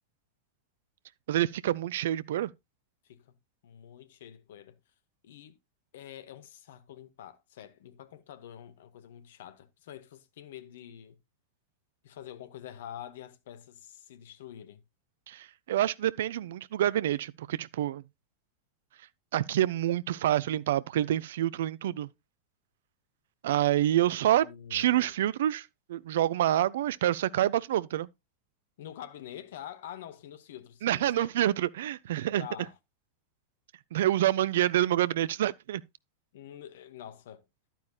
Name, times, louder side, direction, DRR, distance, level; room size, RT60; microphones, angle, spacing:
voice 1, 1.3-2.5 15.3-18.0 19.3-22.1 23.4-24.5 24.7-28.1 30.8-32.5 33.9-35.8, right 12 dB, 60° right, 0.5 m, -27 dB
voice 2, 3.6-4.8 5.2-5.6 5.9-11.2 12.0-14.8 24.2-25.1 28.8-31.5 32.4-32.7 36.3-37.4, left 10 dB, 55° left, 1.0 m, -46 dB
11.5 x 9.2 x 2.3 m
figure-of-eight pair, 90°, 0 cm